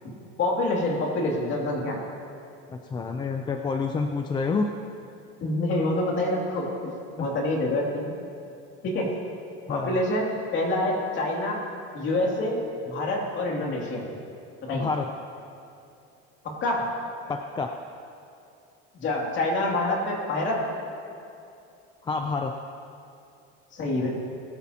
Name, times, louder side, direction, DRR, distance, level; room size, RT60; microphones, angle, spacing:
voice 1, 0.4-2.0 5.4-8.1 8.8-9.1 9.7-11.6 11.9-14.0 14.7-14.9 16.6-16.9 18.9-20.6 23.7-24.1, left 1 dB, 40° left, -2 dB, 2.5 m, -26 dB
voice 2, 2.7-4.7 7.2-7.3 9.7-10.0 14.7-15.1 17.3-17.7 22.0-22.5, left 4 dB, 15° left, 5 dB, 0.3 m, -28 dB
19.5 x 11.5 x 2.8 m, 2.6 s
cardioid pair, 160°, 30 cm